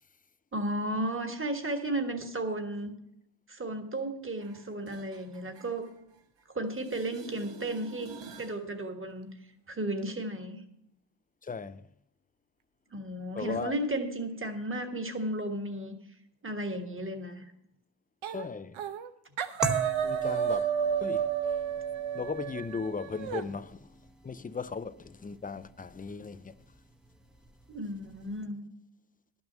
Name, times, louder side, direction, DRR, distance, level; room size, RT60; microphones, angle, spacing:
voice 1, 0.5-2.9 3.5-5.9 6.5-8.1 8.4-9.3 9.7-10.6 12.9-15.9 16.4-17.5 27.7-28.6, right 1 dB, 25° right, 1.5 m, -34 dB
sound 1, 4.4-6.4 6.7-8.6 14.4-14.5, right 5 dB, 65° right, 1.5 m, -48 dB
voice 2, 11.4-11.9 13.3-13.8 18.3-18.8 20.0-20.7 21.0-21.3 22.1-23.9 24.2-26.5, left 5 dB, 20° left, 0.3 m, -37 dB
sound 2, 18.2-18.5 18.8-19.1 19.4-23.4, right 9 dB, 85° right, 0.9 m, -31 dB
sound 3, 19.6-28.4, right 1 dB, ahead, 0.8 m, -42 dB
12.0 x 6.2 x 7.3 m
wide cardioid pair, 125°, 47 cm